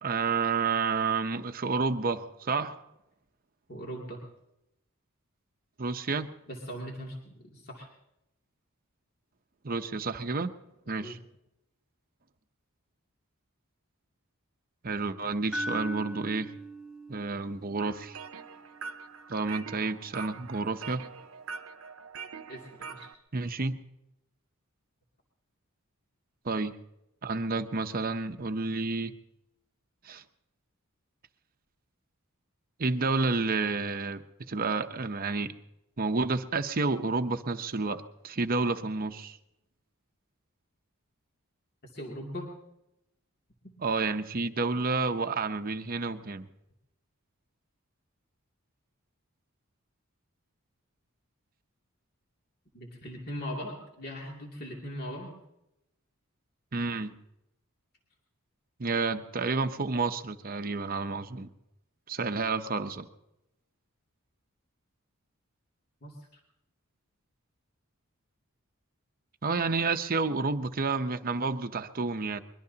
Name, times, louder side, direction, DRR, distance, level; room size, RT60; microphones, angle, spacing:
voice 1, 0.0-2.8 5.8-6.3 9.6-10.5 10.9-11.2 14.8-16.5 17.1-18.2 19.3-21.0 23.3-23.8 26.4-26.7 27.2-29.1 30.0-30.2 32.8-35.5 36.0-39.4 43.8-46.5 56.7-57.1 58.8-61.5 62.1-63.1 69.4-72.4, right 4 dB, 45° right, 8 dB, 0.8 m, -30 dB
voice 2, 3.7-4.2 6.5-7.9 11.0-11.2 22.5-23.1 41.8-42.5 52.7-55.4 66.0-66.4, equal, 45° left, -1 dB, 2.6 m, -40 dB
sound 1, 15.5-19.6, right 1 dB, 5° right, 0.6 m, -41 dB
sound 2, 17.8-23.1, right 5 dB, 70° right, 0.8 m, -43 dB
23.0 x 22.0 x 2.8 m, 0.86 s
head